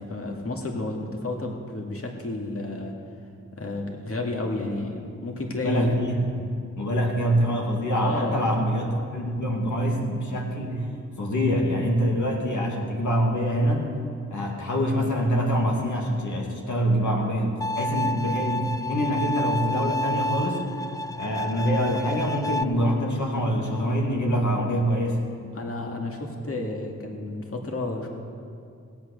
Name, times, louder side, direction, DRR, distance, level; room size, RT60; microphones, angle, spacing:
voice 1, 0.0-2.9 3.6-5.9 7.9-8.4 25.5-28.1, left 2 dB, 45° left, 1 dB, 2.3 m, -31 dB
voice 2, 5.6-6.3 6.7-10.9 11.2-13.9 14.3-20.6 21.2-25.3, equal, 70° left, 0 dB, 2.4 m, -25 dB
Bowed string instrument, 17.6-22.6, left 1 dB, 10° left, 0.5 m, -30 dB
17.0 x 8.7 x 6.7 m, 2.3 s
cardioid pair, 55°, 31 cm